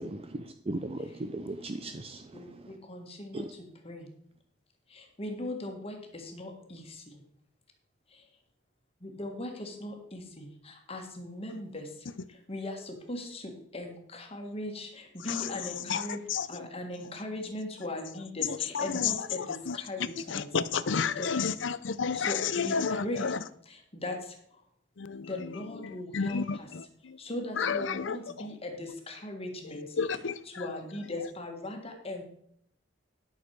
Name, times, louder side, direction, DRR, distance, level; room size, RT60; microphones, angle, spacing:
voice 1, 0.7-2.7 3.3-3.5, right 2 dB, 30° right, 0.5 m, -37 dB
voice 2, 2.9-3.4 3.9-4.0 5.2-6.0 6.3-6.8 9.0-10.5 10.9-11.9 12.5-13.4 13.7-14.9 15.2-16.2 16.5-19.4 19.7-20.5 20.9-21.3 22.1-22.8 23.0-23.3 24.0-24.2 25.3-26.4 27.2-29.8 30.6-32.2, left 1 dB, 30° left, 1.6 m, -38 dB
voice 3, 15.3-16.7 18.4-19.8 20.3-23.4 25.0-27.2 27.6-28.5 29.9-30.7, left 6 dB, 75° left, 0.6 m, -32 dB
12.0 x 6.5 x 4.6 m
head